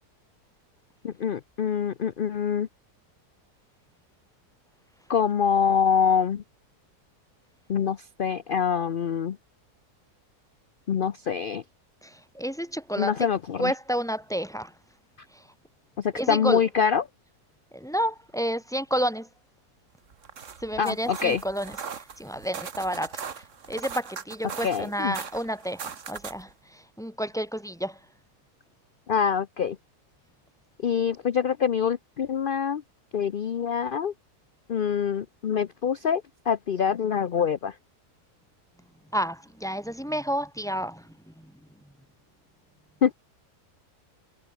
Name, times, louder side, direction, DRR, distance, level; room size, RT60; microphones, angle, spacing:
voice 1, 1.0-2.7 5.1-6.4 7.7-9.4 10.9-11.6 13.0-13.7 16.0-17.0 20.8-21.4 24.6-25.1 29.1-29.8 30.8-32.8 33.1-34.1 34.7-37.7 43.0-43.1, left 7 dB, 55° left, 0.6 m, -25 dB
voice 2, 12.0-13.3 13.6-14.7 15.3-15.4 16.1-16.6 17.7-19.3 20.6-28.0 39.1-41.5, equal, ahead, 1.6 m, -30 dB
sound 1, 20.1-26.5, right 6 dB, 50° right, 1.7 m, -40 dB
omnidirectional pair, 1.7 m